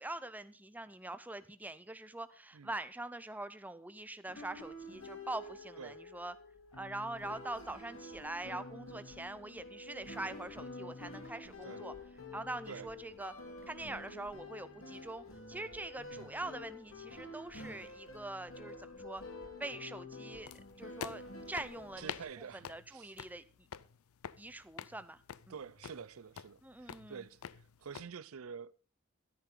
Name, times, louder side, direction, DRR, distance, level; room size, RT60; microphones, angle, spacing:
voice 1, 0.0-6.3 6.8-11.9 12.3-13.3 13.7-19.2 19.6-20.5 20.8-23.4 24.4-25.2 25.5-25.6 26.6-27.3, right 2 dB, 10° right, 0.6 m, -44 dB
sound 1, 4.3-22.2, left 2 dB, 70° left, 3.2 m, -49 dB
sound 2, 20.5-28.1, left 8 dB, 85° left, 0.5 m, -48 dB
voice 2, 22.0-23.1 25.5-28.7, right 6 dB, 85° right, 0.5 m, -48 dB
13.0 x 10.5 x 3.8 m
head